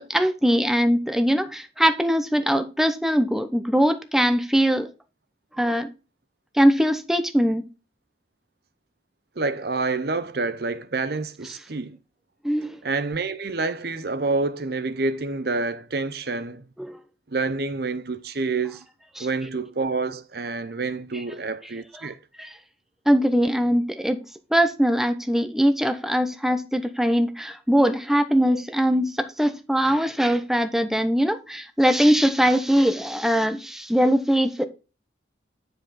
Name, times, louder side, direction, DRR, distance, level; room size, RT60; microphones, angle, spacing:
voice 1, 0.0-4.9 5.6-5.9 6.5-7.7 12.4-12.8 16.9-17.0 19.2-19.3 22.4-22.6 23.1-24.2 24.5-34.7, equal, ahead, 0.8 m, -21 dB
voice 2, 9.4-12.0 12.8-16.7 17.3-18.9 19.2-22.2, right 3 dB, 55° right, 0.7 m, -28 dB
9.7 x 5.2 x 4.1 m
head